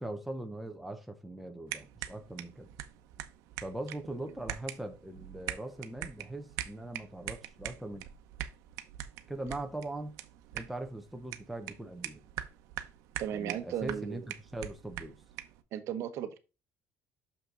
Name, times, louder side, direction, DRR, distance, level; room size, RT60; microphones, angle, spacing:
voice 1, 0.0-2.7 3.6-8.1 9.3-10.1 10.5-12.2 13.3-14.2 14.5-15.2, right 1 dB, ahead, 0.9 m, -40 dB
sound 1, 1.7-15.6, right 13 dB, 90° right, 0.8 m, -43 dB
voice 2, 13.2-14.3 15.7-16.4, right 10 dB, 60° right, 1.0 m, -36 dB
6.5 x 5.7 x 3.8 m
cardioid pair, 150°, 5 cm